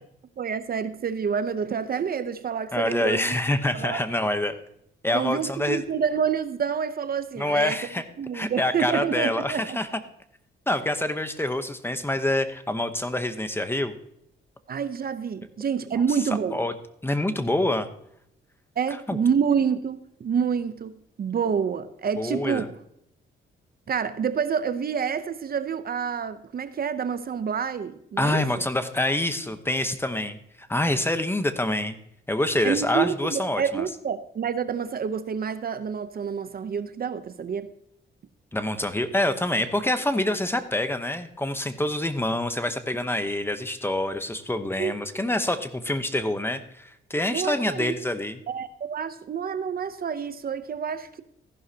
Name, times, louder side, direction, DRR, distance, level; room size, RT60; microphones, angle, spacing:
voice 1, 0.4-3.3 3.7-4.0 5.1-7.8 8.2-9.8 14.7-16.6 18.8-22.6 23.9-28.4 32.6-37.7 44.8-44.9 47.3-47.9 48.5-51.2, right 7 dB, 50° right, 0.7 m, -28 dB
voice 2, 2.7-4.5 5.0-5.8 7.4-8.0 8.3-9.9 10.7-14.0 16.5-16.7 17.0-17.9 19.1-19.2 22.2-22.7 28.2-30.4 30.7-32.0 32.3-33.8 38.5-48.4, left 1 dB, 10° left, 0.9 m, -26 dB
14.5 x 11.0 x 2.8 m
cardioid pair, 100°, 20 cm